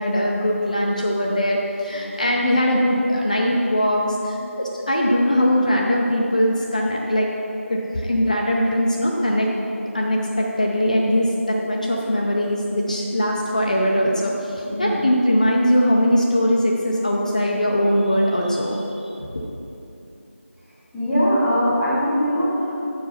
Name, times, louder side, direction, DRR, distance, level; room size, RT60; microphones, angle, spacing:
voice 1, 0.0-7.3 7.7-9.5 9.9-19.4, equal, 35° left, -2 dB, 0.5 m, -21 dB
voice 2, 14.6-15.0 20.9-22.7, equal, ahead, -23 dB, 0.7 m, -21 dB
7.3 x 4.7 x 5.7 m, 3.0 s
figure-of-eight pair, 175°, 7 cm